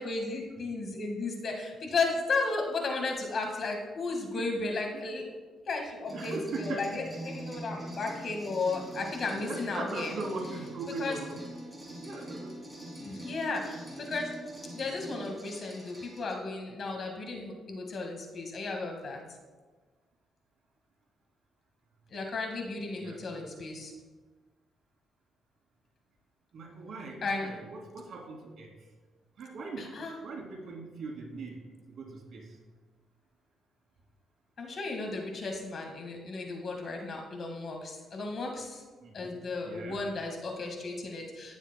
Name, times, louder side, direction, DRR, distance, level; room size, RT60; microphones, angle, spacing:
voice 1, 0.0-5.2 5.6-10.1 11.0-11.2 13.0-14.3 14.7-19.2 22.1-23.9 27.2-27.5 29.8-30.1 34.6-38.8 39.1-41.6, left 3 dB, 50° left, 2 dB, 1.7 m, -34 dB
sound 1, 6.1-16.3, right 1 dB, 10° right, 2.5 m, -43 dB
voice 2, 6.1-7.0 9.4-11.4 12.0-12.6 23.0-23.2 26.5-28.7 29.4-29.9 30.2-31.6 31.9-32.6 39.0-39.3 39.6-40.0, right 3 dB, 60° right, 0 dB, 2.6 m, -40 dB
17.5 x 7.1 x 2.2 m, 1.3 s
cardioid pair, 90°, 0 cm